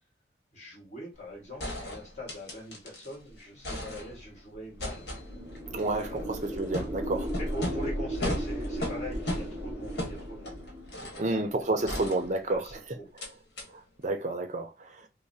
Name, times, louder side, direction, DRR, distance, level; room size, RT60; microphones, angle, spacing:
voice 1, 0.5-5.1 6.1-6.3 7.3-10.6 11.0-11.5 11.8-13.1, equal, 40° left, 1.6 m, -43 dB
sound 1, 1.1-1.2 1.6-3.1 3.4-4.4 4.8-11.3 11.9-12.7 13.2-13.3 13.6-13.7, left 1 dB, 65° left, 1.2 m, -38 dB
sound 2, 4.8-10.9, equal, 10° right, 0.9 m, -36 dB
voice 2, 5.7-7.3 11.2-12.7 14.0-15.0, right 2 dB, 40° right, 0.5 m, -30 dB
5.5 x 2.1 x 2.7 m
head